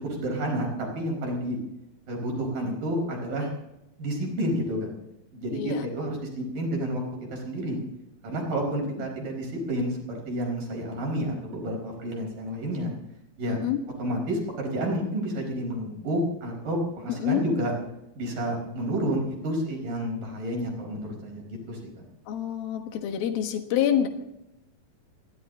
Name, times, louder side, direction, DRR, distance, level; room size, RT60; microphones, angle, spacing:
voice 1, 0.0-1.6 2.1-3.5 4.0-4.9 5.3-7.0 7.3-7.8 8.2-12.9 13.4-13.6 14.0-17.7 18.1-22.0, right 1 dB, 65° right, 0 dB, 6.3 m, -30 dB
voice 2, 5.5-5.9 9.0-9.1 13.5-13.8 17.1-17.4 22.3-24.1, left 10 dB, 85° left, 5 dB, 3.3 m, -27 dB
28.0 x 11.5 x 3.8 m, 0.87 s
omnidirectional pair, 4.1 m